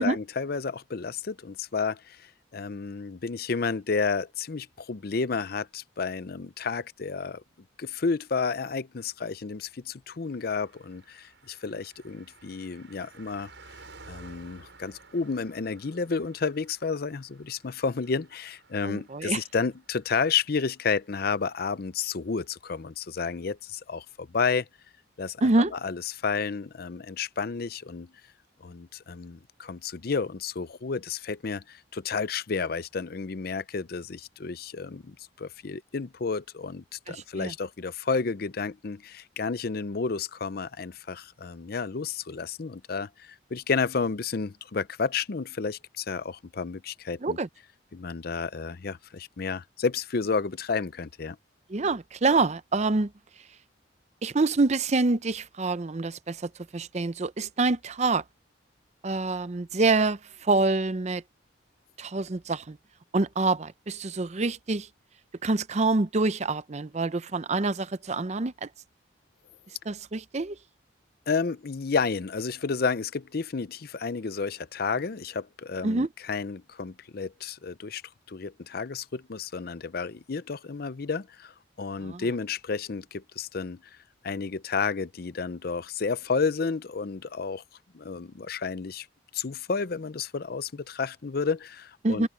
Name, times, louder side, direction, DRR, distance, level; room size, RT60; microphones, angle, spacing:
voice 1, 0.0-7.4 7.8-13.5 14.1-24.7 25.2-28.1 28.6-47.4 47.9-51.4 71.3-78.0 78.3-83.8 84.2-87.6 87.9-89.1 89.3-92.3, left 5 dB, 50° left, 0.6 m, -31 dB
Car passing by, 10.3-22.1 22.4-22.5, right 3 dB, 70° right, 7.6 m, -54 dB
voice 2, 18.8-19.4 25.4-25.7 37.1-37.5 47.2-47.5 51.7-53.1 54.2-58.2 59.0-61.2 62.0-62.8 63.1-64.9 65.4-68.7 69.9-70.6 75.8-76.1 82.0-82.2 92.0-92.3, right 3 dB, 35° right, 0.6 m, -26 dB
open air
head